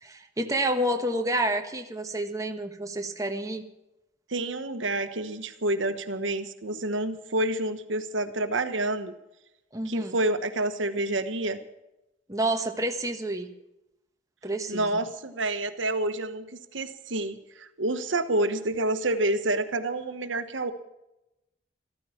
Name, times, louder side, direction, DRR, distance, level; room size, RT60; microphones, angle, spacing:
voice 1, 0.0-3.7 9.7-10.2 12.3-13.5 14.4-15.0, right 1 dB, 20° right, 4 dB, 1.3 m, -29 dB
voice 2, 4.3-9.1 9.8-11.6 14.7-20.7, right 2 dB, 85° right, 10 dB, 1.2 m, -28 dB
14.0 x 14.0 x 5.8 m, 0.91 s
head